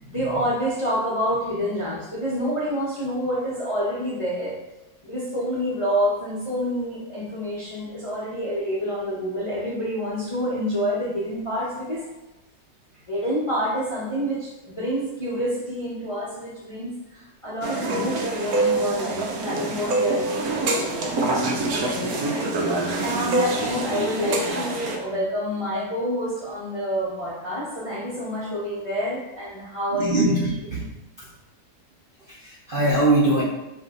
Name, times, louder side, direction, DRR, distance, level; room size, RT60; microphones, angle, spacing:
voice 1, 0.1-4.6 5.0-12.0 13.1-21.3 21.6-22.5 23.0-30.4, equal, 30° left, -7 dB, 0.7 m, -28 dB
sound 1, 17.6-25.0, right 2 dB, 65° right, 1.1 m, -25 dB
voice 2, 29.9-30.8 32.4-33.4, right 2 dB, 45° right, -7 dB, 0.7 m, -21 dB
5.2 x 2.6 x 3.8 m, 0.97 s
omnidirectional pair, 1.9 m